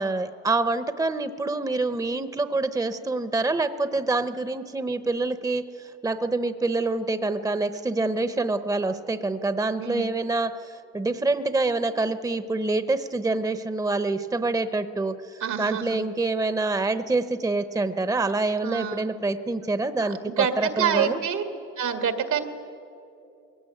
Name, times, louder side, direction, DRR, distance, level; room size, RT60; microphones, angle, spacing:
voice 1, 0.0-21.2, right 3 dB, 10° right, 11 dB, 0.8 m, -26 dB
voice 2, 15.4-16.0 18.6-19.1 20.2-21.4 21.8-22.4, right 8 dB, 75° right, 6 dB, 2.0 m, -26 dB
21.5 x 17.5 x 9.2 m, 2.7 s
cardioid pair, 90°, 30 cm